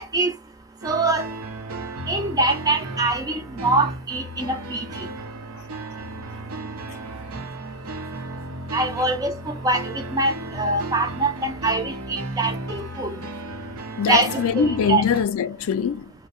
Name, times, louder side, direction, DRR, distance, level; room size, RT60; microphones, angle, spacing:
voice 1, 0.0-15.0, right 2 dB, 15° right, 0.3 m, -26 dB
sound 1, 0.8-15.2, right 2 dB, 85° right, 0.7 m, -34 dB
voice 2, 14.0-16.1, left 6 dB, 80° left, 0.4 m, -22 dB
2.7 x 2.0 x 2.4 m
head